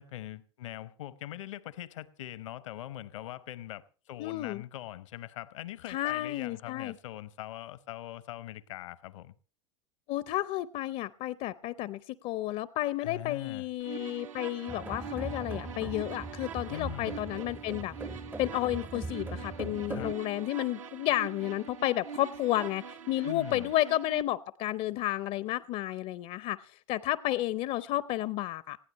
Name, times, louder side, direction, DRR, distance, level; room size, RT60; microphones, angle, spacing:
voice 1, 0.0-9.3 13.0-13.7 16.7-17.2 19.7-20.2 23.2-23.7, left 14 dB, 70° left, 0.9 m, -42 dB
voice 2, 4.2-4.6 5.9-6.9 10.1-17.9 18.4-28.8, left 15 dB, 45° left, 0.6 m, -32 dB
sound 1, 13.8-24.2, right 6 dB, 80° right, 1.2 m, -44 dB
sound 2, 14.7-20.2, right 3 dB, 10° right, 0.6 m, -40 dB
20.0 x 15.5 x 3.0 m
hypercardioid pair, 90°, 16 cm